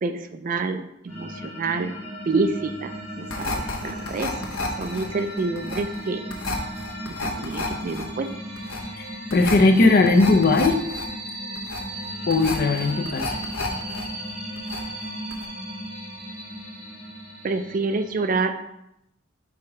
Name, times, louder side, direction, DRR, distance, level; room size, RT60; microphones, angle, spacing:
voice 1, 0.0-2.0 2.3-4.3 4.8-6.2 7.1-8.3 17.4-18.6, right 3 dB, 40° right, 9 dB, 0.4 m, -27 dB
sound 1, 1.1-18.3, equal, 5° right, 2.2 m, -36 dB
sound 2, 3.3-14.0 14.3-15.0 15.3-15.5, left 3 dB, 90° left, 0.9 m, -32 dB
voice 2, 9.3-10.8 12.3-13.4, left 3 dB, 45° left, 6 dB, 0.6 m, -18 dB
4.7 x 4.2 x 4.9 m, 0.83 s
head